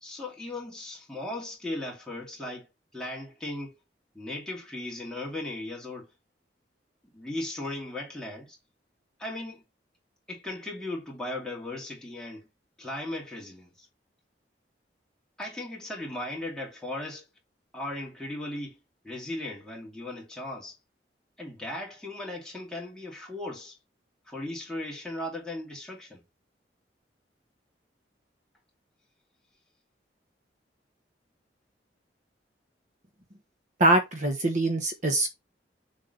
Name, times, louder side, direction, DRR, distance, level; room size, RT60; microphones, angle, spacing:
voice 1, 0.0-2.7 2.9-3.7 4.1-6.1 7.1-8.6 9.2-9.6 10.3-12.5 12.8-13.9 15.4-17.2 17.7-18.8 19.0-20.8 21.4-23.8 24.3-26.2, left 1 dB, 5° left, 2.6 m, -37 dB
voice 2, 33.8-35.3, right 1 dB, 45° right, 1.2 m, -23 dB
7.0 x 3.6 x 3.9 m
head